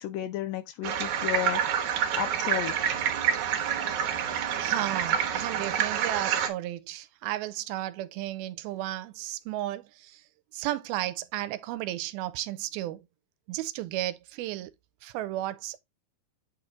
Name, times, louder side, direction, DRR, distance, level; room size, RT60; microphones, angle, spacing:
voice 1, 0.0-1.6 2.1-3.0, left 13 dB, 80° left, 2.0 m, -33 dB
sound 1, 0.8-6.5, right 9 dB, 65° right, 2.1 m, -28 dB
voice 2, 4.6-9.8 10.5-13.0 13.5-14.7 15.0-15.8, right 15 dB, 85° right, 2.4 m, -33 dB
8.6 x 3.2 x 3.6 m
omnidirectional pair, 4.4 m